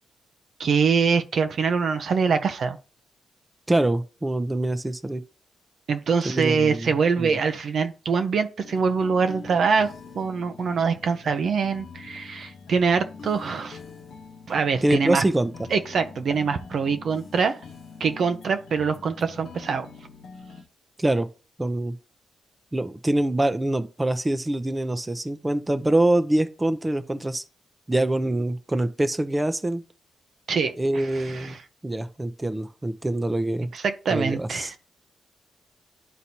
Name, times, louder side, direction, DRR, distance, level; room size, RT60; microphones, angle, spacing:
voice 1, 0.6-2.8 5.9-13.8 14.5-15.2 15.7-17.6 18.0-19.9 30.5-30.8 31.1-31.6 33.7-34.7, right 5 dB, 65° right, 0.8 m, -24 dB
voice 2, 3.7-5.2 6.2-6.9 7.2-7.4 14.8-15.5 21.0-21.3 21.6-22.0 22.7-27.4 27.9-29.8 30.8-31.6 31.8-33.7 34.1-34.7, right 1 dB, 15° right, 0.7 m, -24 dB
sound 1, 8.6-20.6, left 4 dB, 70° left, 0.9 m, -44 dB
11.5 x 4.0 x 2.8 m
cardioid pair, 75°, 0 cm